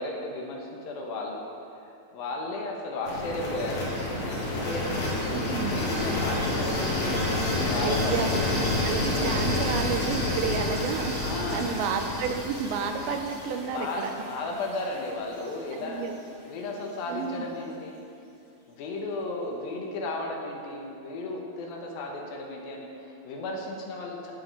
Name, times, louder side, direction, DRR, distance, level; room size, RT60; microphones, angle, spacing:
voice 1, 0.0-1.4 1.7-3.9 4.5-4.9 5.5-8.3 11.2-11.7 13.7-16.0 16.4-18.0 18.7-24.3, left 2 dB, 75° left, 0 dB, 3.1 m, -34 dB
Noisy Thing, 3.0-15.0, left 2 dB, 40° left, 3.1 m, -29 dB
voice 2, 5.3-5.8 7.8-14.1 15.7-16.2 17.1-17.5, right 5 dB, 85° right, 6 dB, 2.7 m, -31 dB
17.0 x 8.5 x 4.5 m, 2.6 s
omnidirectional pair, 4.3 m